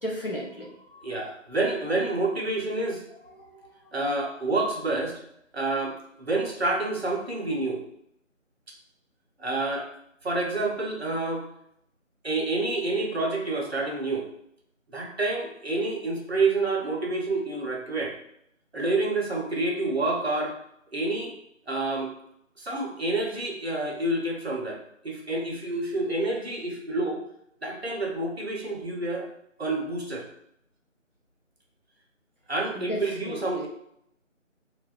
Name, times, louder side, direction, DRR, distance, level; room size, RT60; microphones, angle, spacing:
voice 1, 0.0-1.0 3.4-3.6 32.7-33.7, equal, 45° left, -3 dB, 0.5 m, -35 dB
voice 2, 1.0-3.0 3.9-5.2 5.5-7.8 9.4-9.9 10.2-11.5 12.2-14.3 14.9-18.2 18.7-20.6 20.9-21.3 21.7-22.1 22.6-27.2 27.6-29.3 29.6-30.2 32.5-33.7, right 2 dB, 55° right, 0 dB, 0.6 m, -28 dB
2.6 x 2.1 x 2.2 m, 0.75 s
figure-of-eight pair, 175°, 39 cm